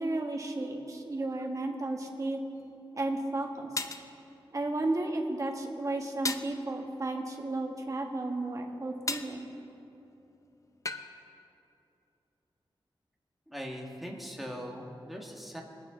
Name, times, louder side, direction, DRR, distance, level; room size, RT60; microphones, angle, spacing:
voice 1, 0.0-2.4 2.9-3.7 4.5-9.5, right 2 dB, 40° right, 1 dB, 1.5 m, -33 dB
sound 1, 2.6-2.7 3.8-4.1 6.3-6.6 9.1-9.4 10.9-11.1, left 3 dB, 40° left, 0.6 m, -34 dB
voice 2, 13.5-15.6, equal, ahead, -1 dB, 1.9 m, -40 dB
22.5 x 9.1 x 3.9 m, 2.8 s
wide cardioid pair, 90°, 9 cm